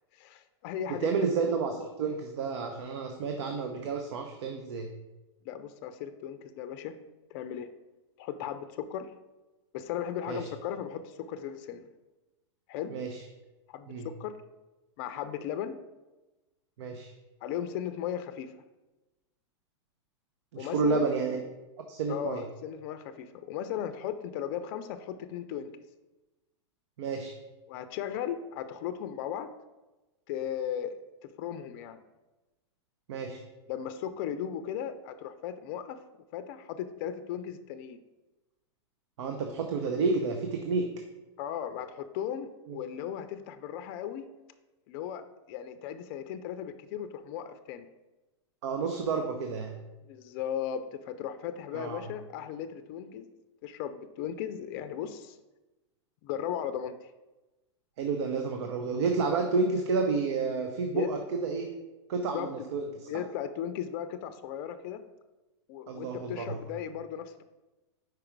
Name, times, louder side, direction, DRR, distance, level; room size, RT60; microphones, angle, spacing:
voice 1, 0.1-1.6 5.5-7.0 7.3-7.7 8.2-9.1 9.7-11.8 12.7-12.9 13.7-13.9 14.2-14.3 15.0-15.8 17.4-18.6 20.6-21.1 22.1-25.7 27.7-29.5 30.3-31.0 31.4-32.0 33.7-36.0 36.3-38.0 41.4-44.3 44.9-47.9 50.1-53.3 53.6-55.4 56.2-57.1 60.9-61.1 62.3-62.5 63.1-65.0 65.7-67.4, left 9 dB, 50° left, 10 dB, 0.5 m, -36 dB
voice 2, 0.9-4.9 10.3-10.5 12.9-13.2 13.9-14.1 16.8-17.1 20.5-21.4 21.9-22.4 27.0-27.3 33.1-33.4 39.2-40.9 42.7-42.8 48.6-49.7 51.7-52.0 58.0-61.8 62.1-62.9 65.9-66.6, right 4 dB, 65° right, 5 dB, 0.7 m, -30 dB
4.9 x 4.7 x 4.6 m, 1.1 s
hypercardioid pair, 125°, 15 cm